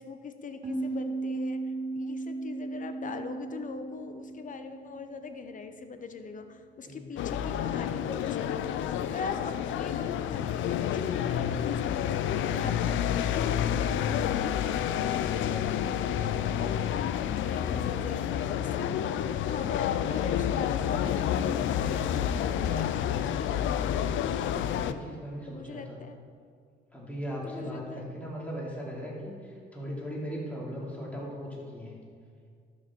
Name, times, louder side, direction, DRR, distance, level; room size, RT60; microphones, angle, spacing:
voice 1, 0.0-1.6 1.9-13.0 13.3-24.0 25.5-26.2 27.4-28.0, left 4 dB, 40° left, 8 dB, 0.8 m, -41 dB
sound 1, 0.6-6.0, right 3 dB, 35° right, 2.5 m, -36 dB
voice 2, 6.8-7.6 24.6-26.0 26.9-32.0, equal, 5° left, -5 dB, 2.8 m, -39 dB
sound 2, 7.2-24.9, left 9 dB, 75° left, 0.4 m, -29 dB
12.0 x 6.3 x 4.5 m, 2.1 s
cardioid pair, 90°, 20 cm